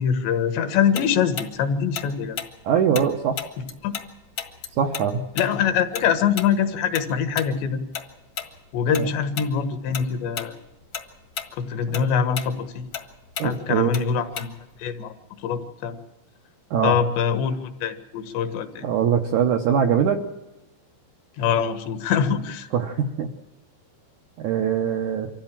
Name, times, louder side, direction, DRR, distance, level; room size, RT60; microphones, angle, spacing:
voice 1, 0.0-2.4 3.8-3.9 5.4-7.8 8.7-10.5 11.5-12.9 13.4-14.5 14.8-15.1 15.4-16.0 16.8-18.9 21.4-22.7, left 7 dB, 80° left, 8 dB, 3.7 m, -24 dB
Tick-tock, 0.9-4.1 4.4-9.1 9.4-9.6 9.9-10.5 10.8-14.8, left 7 dB, 55° left, 1.3 m, -34 dB
voice 2, 2.6-3.5 4.7-5.2 9.0-9.1 11.9-12.0 13.4-13.9 16.7-17.0 18.8-20.2 22.7-23.3 24.4-25.3, right 8 dB, 75° right, 4 dB, 1.7 m, -22 dB
25.0 x 14.5 x 7.4 m, 1.0 s
omnidirectional pair, 4.9 m